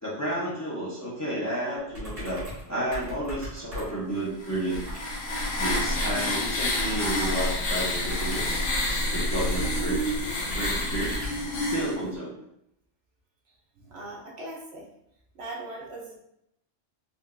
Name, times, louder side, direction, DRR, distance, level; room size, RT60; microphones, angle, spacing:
voice 1, 0.0-2.4 2.7-4.8 5.6-8.6 9.1-10.2 10.5-11.1 11.6-12.3, right 1 dB, 15° left, -7 dB, 0.6 m, -31 dB
sound 1, 1.9-2.7 2.9-4.1 4.7-5.1 6.5-7.4 8.0-10.0 10.5-11.5, equal, 80° right, 1.7 m, -38 dB
sound 2, 4.4-11.9, left 1 dB, 85° left, 1.1 m, -28 dB
voice 2, 13.8-14.9 15.3-16.2, right 2 dB, 65° right, -2 dB, 0.8 m, -41 dB
3.7 x 2.5 x 2.3 m, 0.78 s
omnidirectional pair, 1.3 m